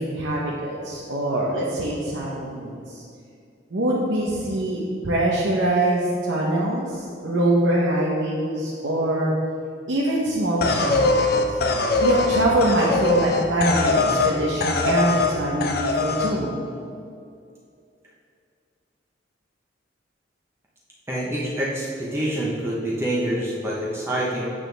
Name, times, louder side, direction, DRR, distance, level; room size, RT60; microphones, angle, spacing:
voice 1, 0.0-3.0 3.7-9.3 9.9-11.3 12.0-16.6, right 1 dB, 80° right, -5 dB, 0.9 m, -24 dB
sound 1, 10.6-14.3 14.6-15.3 15.6-16.3, left 3 dB, 55° left, 0.6 m, -22 dB
voice 2, 21.1-24.4, right 1 dB, 15° right, -6 dB, 0.9 m, -26 dB
8.6 x 6.3 x 3.4 m, 2.4 s
head